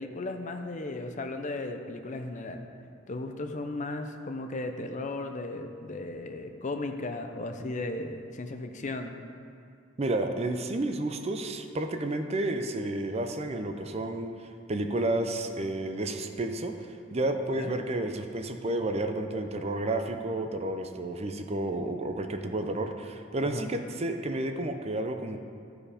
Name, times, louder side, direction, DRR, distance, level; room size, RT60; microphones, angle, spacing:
voice 1, 0.0-2.7 3.1-9.1 17.5-17.7 23.4-23.7, left 2 dB, 40° left, 6 dB, 0.6 m, -36 dB
voice 2, 10.0-16.7 17.1-25.4, right 2 dB, 30° right, 6 dB, 0.6 m, -31 dB
14.0 x 4.9 x 5.0 m, 2.5 s
head